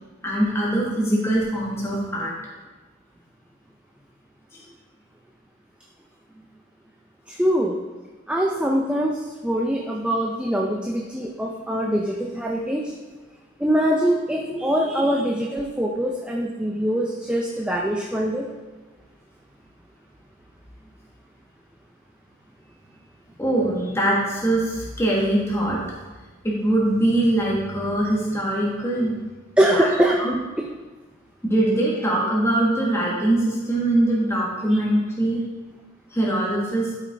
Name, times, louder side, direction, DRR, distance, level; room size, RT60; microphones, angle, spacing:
voice 1, 0.2-2.3 4.5-4.7 23.4-25.8 26.4-29.2 29.6-29.9 30.2-30.3 31.4-35.4 36.1-36.9, right 1 dB, 15° left, -4 dB, 1.5 m, -22 dB
voice 2, 7.3-7.7 8.3-12.9 13.6-18.5 29.6-30.2 30.6-30.7 34.7-34.8, equal, 5° right, -1 dB, 0.6 m, -23 dB
12.5 x 5.8 x 3.5 m, 1.3 s
head